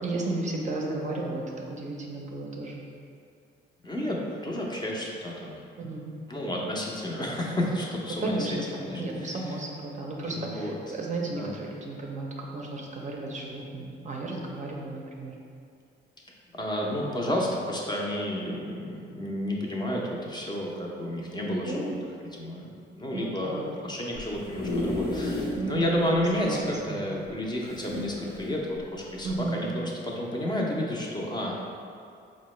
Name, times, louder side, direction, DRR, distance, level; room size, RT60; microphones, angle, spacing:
voice 1, 0.0-2.8 5.8-6.1 8.2-15.4 21.5-22.0 23.1-23.7 25.6-27.1 29.2-29.9, right 2 dB, 40° right, -1 dB, 0.5 m, -34 dB
voice 2, 3.8-5.7 6.3-9.4 10.3-10.7 11.3-11.5 16.5-21.9 22.3-31.5, left 1 dB, 20° left, -2 dB, 0.5 m, -31 dB
sound 1, 24.1-25.7 26.1-26.2 26.4-26.5 27.6-28.6 29.3-29.4, left 2 dB, 55° left, 0.7 m, -32 dB
4.5 x 2.1 x 3.1 m, 2.4 s
cardioid pair, 90°, 20 cm